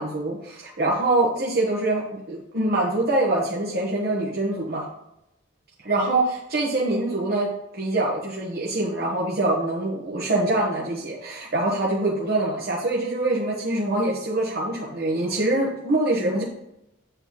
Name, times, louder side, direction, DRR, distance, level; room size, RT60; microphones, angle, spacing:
voice 1, 0.0-4.9 5.8-7.5 7.8-16.4, right 2 dB, 50° right, -4 dB, 1.2 m, -24 dB
8.0 x 7.6 x 3.1 m, 0.86 s
head